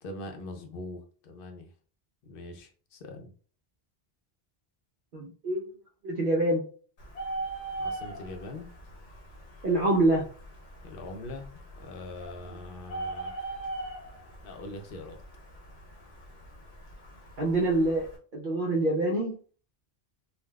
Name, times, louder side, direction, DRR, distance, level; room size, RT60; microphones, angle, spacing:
voice 1, 0.0-1.7 2.2-3.3 7.8-8.7 10.8-13.6 14.4-15.2, left 2 dB, 65° left, 5 dB, 0.7 m, -42 dB
voice 2, 5.1-5.6 6.0-6.6 9.6-10.2 17.4-18.1 18.3-19.4, right 2 dB, 55° right, -2 dB, 0.8 m, -25 dB
Bird, 7.0-18.2, right 2 dB, 90° left, 1.0 m, -41 dB
3.5 x 2.3 x 2.2 m, 0.41 s
omnidirectional pair, 1.1 m